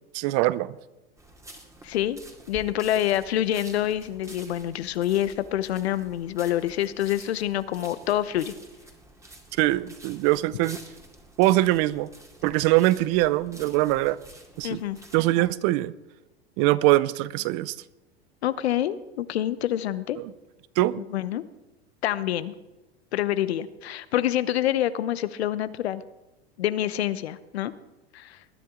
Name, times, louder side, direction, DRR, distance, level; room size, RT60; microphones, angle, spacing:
voice 1, 0.1-0.7 9.6-10.8 11.4-12.1 12.4-14.2 14.6-14.8 15.1-15.9 16.6-17.7 20.8-21.1, right 17 dB, 50° right, 19 dB, 0.6 m, -22 dB
sound 1, 1.2-15.3, right 1 dB, 10° right, 2.3 m, -49 dB
voice 2, 1.8-2.2 2.5-8.5 14.6-15.0 18.4-20.2 21.1-21.4 22.0-22.5 23.1-26.0 26.6-27.7 28.1-28.4, left 12 dB, 80° left, 15 dB, 0.9 m, -26 dB
20.0 x 10.5 x 3.8 m, 1.0 s
hypercardioid pair, 100°, 31 cm